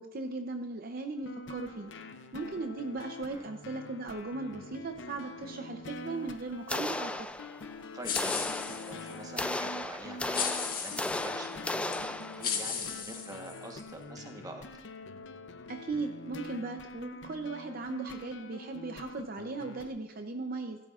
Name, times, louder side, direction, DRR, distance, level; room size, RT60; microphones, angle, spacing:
voice 1, 0.0-1.9 2.3-7.3 15.7-20.8, right 3 dB, 50° right, 5 dB, 0.7 m, -38 dB
sound 1, 1.2-19.9, left 2 dB, 70° left, 0.7 m, -45 dB
sound 2, 6.7-7.7 8.1-12.6, left 2 dB, 5° left, 0.3 m, -35 dB
voice 2, 7.9-14.8, right 1 dB, 20° right, 3 dB, 1.2 m, -46 dB
sound 3, 8.0-9.2 10.3-11.3 11.9-12.0 12.4-13.8, left 7 dB, 50° left, 1.6 m, -35 dB
16.0 x 13.0 x 2.5 m, 1.1 s
head